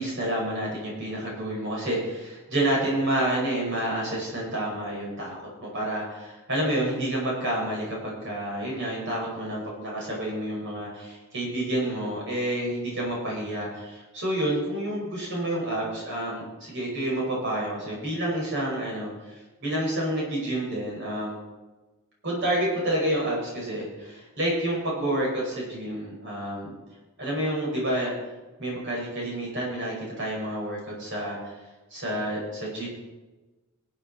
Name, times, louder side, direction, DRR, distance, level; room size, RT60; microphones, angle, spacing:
voice 1, 0.0-21.4 22.2-26.7 27.2-28.1 28.6-31.6 31.9-32.9, right 1 dB, 55° right, -4 dB, 5.4 m, -29 dB
24.0 x 8.3 x 4.4 m, 1.2 s
head